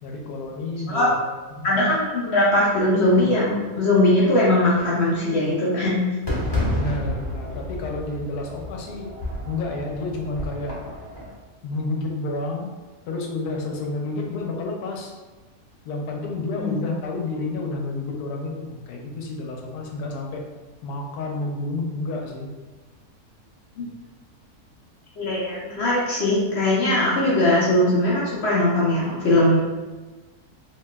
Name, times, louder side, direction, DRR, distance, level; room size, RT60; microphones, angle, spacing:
voice 1, 0.0-1.8 6.7-9.1 9.4-10.7 11.6-12.7 13.1-15.1 15.8-20.4 20.8-22.5, left 2 dB, 80° left, 0 dB, 1.1 m, -30 dB
voice 2, 1.6-6.0 16.5-16.8 23.8-23.9 25.2-29.6, left 1 dB, 60° left, -6 dB, 0.7 m, -20 dB
Fireworks, 6.3-11.3, left 1 dB, 20° left, 0.7 m, -30 dB
3.0 x 2.8 x 2.2 m, 1.2 s
omnidirectional pair, 1.6 m